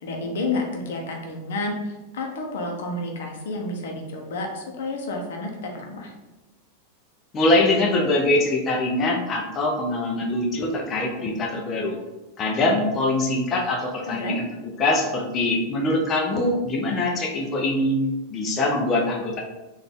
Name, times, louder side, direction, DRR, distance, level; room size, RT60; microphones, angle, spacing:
voice 1, 0.0-6.1 14.1-14.4, left 2 dB, 80° left, 2 dB, 0.8 m, -30 dB
voice 2, 7.3-12.0 12.4-14.5 14.8-18.0 18.3-19.4, left 2 dB, 30° left, -1 dB, 0.7 m, -23 dB
4.0 x 2.6 x 3.6 m, 1.1 s
supercardioid pair, 135°, 0 cm